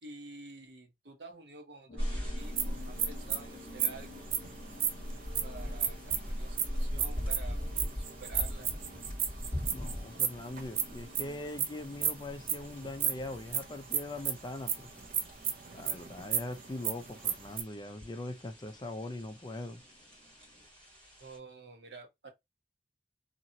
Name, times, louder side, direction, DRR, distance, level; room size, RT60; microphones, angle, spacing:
voice 1, 0.0-4.2 5.4-8.7 21.2-22.3, right 3 dB, 70° right, 1.0 m, -50 dB
sound 1, 1.9-20.7, left 2 dB, 45° left, 1.0 m, -54 dB
sound 2, 2.0-21.4, equal, 30° right, 1.8 m, -41 dB
sound 3, 2.4-17.6, right 8 dB, 50° right, 0.5 m, -34 dB
voice 2, 9.7-14.9 15.7-19.8, left 2 dB, 25° left, 0.4 m, -41 dB
2.9 x 2.7 x 2.7 m
head